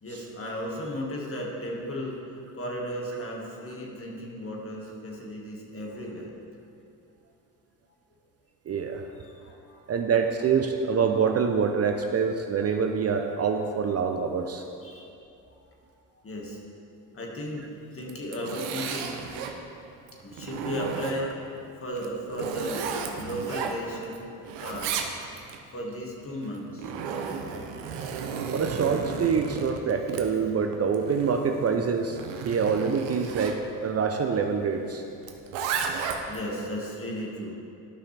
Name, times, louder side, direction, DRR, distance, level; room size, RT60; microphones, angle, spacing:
voice 1, 0.0-6.3 9.0-9.9 14.8-15.1 16.2-16.6 17.1-19.2 20.2-21.3 21.8-24.3 24.6-24.9 25.7-26.9 35.2-35.4 36.3-37.5, equal, 35° left, -1 dB, 1.8 m, -35 dB
voice 2, 8.7-9.1 9.9-14.6 28.5-35.0, right 6 dB, 40° right, 5 dB, 0.6 m, -26 dB
Zipper (clothing), 18.0-19.6 20.1-21.4 21.9-24.2 24.4-25.6 26.4-33.6 35.2-36.4, right 6 dB, 90° right, 0.7 m, -34 dB
11.5 x 5.7 x 3.3 m, 2.6 s
supercardioid pair, 70°, 40 cm